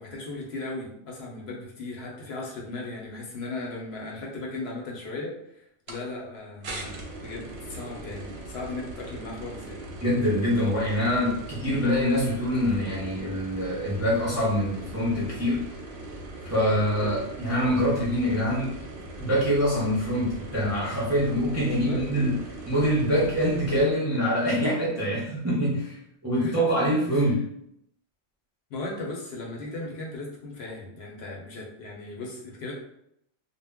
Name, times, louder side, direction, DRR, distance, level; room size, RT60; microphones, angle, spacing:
voice 1, 0.0-9.8 17.0-17.2 21.6-22.1 26.4-26.6 27.1-27.3 28.7-32.7, left 2 dB, 65° left, -2 dB, 0.8 m, -37 dB
sound 1, 5.9-6.0 6.6-23.8, right 2 dB, 65° right, 0.7 m, -40 dB
voice 2, 10.0-15.6 16.4-18.8 19.2-22.4 22.7-26.0 26.2-27.4, equal, 25° right, -7 dB, 0.4 m, -25 dB
2.2 x 2.0 x 3.4 m, 0.76 s
omnidirectional pair, 1.2 m